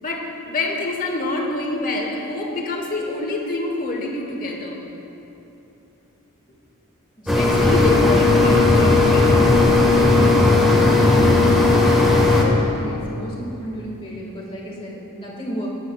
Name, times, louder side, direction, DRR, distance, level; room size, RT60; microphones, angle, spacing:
voice 1, 0.0-4.8 7.2-9.5, left 2 dB, 40° left, 1 dB, 1.2 m, -26 dB
voice 2, 7.2-7.6 12.6-15.7, equal, 25° left, -4 dB, 1.7 m, -34 dB
sound 1, 7.3-12.4, left 2 dB, ahead, 1.2 m, -15 dB
14.0 x 10.0 x 2.3 m, 3.0 s
head